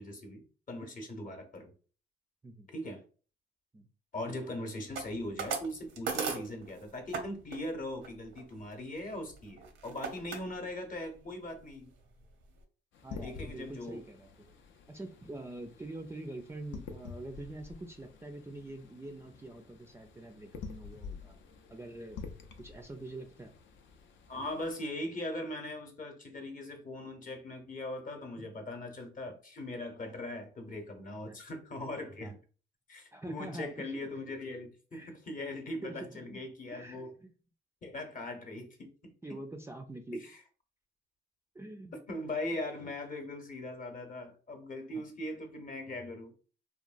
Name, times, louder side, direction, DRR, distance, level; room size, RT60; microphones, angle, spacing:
voice 1, 0.0-1.7 2.7-3.0 4.1-11.9 13.2-14.0 24.3-32.4 32.9-37.1 37.8-39.4 40.2-40.3 42.1-46.3, left 1 dB, 40° left, 0.8 m, -40 dB
sound 1, 5.0-7.2 7.5-7.7 8.0-10.4 10.9-11.3 11.7-11.8 12.0-12.6, right 5 dB, 90° right, 0.7 m, -38 dB
sound 2, 12.9-24.7, left 5 dB, 70° left, 0.4 m, -49 dB
voice 2, 13.0-14.5 14.9-21.3 21.7-22.2 22.6-23.5 28.4-28.5 31.3-31.4 32.2-32.3 33.1-34.1 34.9-35.2 35.8-36.4 36.7-37.3 39.2-40.2 41.5-42.0 44.9-45.0, right 2 dB, 15° right, 0.3 m, -45 dB
2.9 x 2.2 x 2.4 m
cardioid pair, 90°, 20 cm